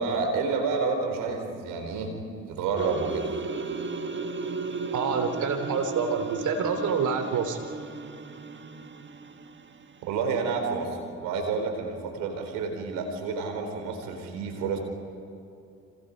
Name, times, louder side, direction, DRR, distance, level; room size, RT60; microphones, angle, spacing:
voice 1, 0.0-2.1 2.5-3.3 10.0-14.8, right 4 dB, 85° right, 4 dB, 4.2 m, -29 dB
sound 1, 2.8-9.9, right 4 dB, 35° right, 1.5 m, -35 dB
voice 2, 4.9-7.6, right 5 dB, 65° right, 6 dB, 3.3 m, -27 dB
30.0 x 26.5 x 5.3 m, 2.6 s
supercardioid pair, 60°, 32 cm